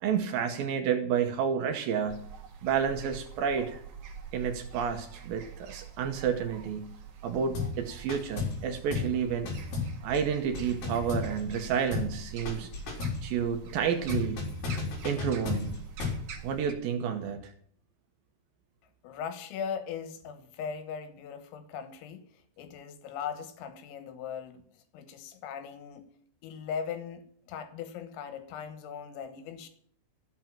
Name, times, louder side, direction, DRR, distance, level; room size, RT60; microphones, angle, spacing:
voice 1, 0.0-2.3 2.6-3.8 4.3-7.0 7.2-9.5 10.0-12.7 13.2-14.5 15.0-15.9 16.4-17.5, right 7 dB, 85° right, 6 dB, 2.0 m, -30 dB
sound 1, 2.1-16.7, right 6 dB, 55° right, 2.5 m, -45 dB
sound 2, 7.5-7.8 8.1-8.6 8.9-9.2 9.5-11.6 11.9-12.2 12.5-13.3 14.1-16.3, left 5 dB, 45° left, 5.1 m, -34 dB
voice 2, 19.0-26.0 26.4-29.7, left 7 dB, 80° left, 10 dB, 3.9 m, -39 dB
14.5 x 8.4 x 7.3 m, 0.62 s
omnidirectional pair, 5.9 m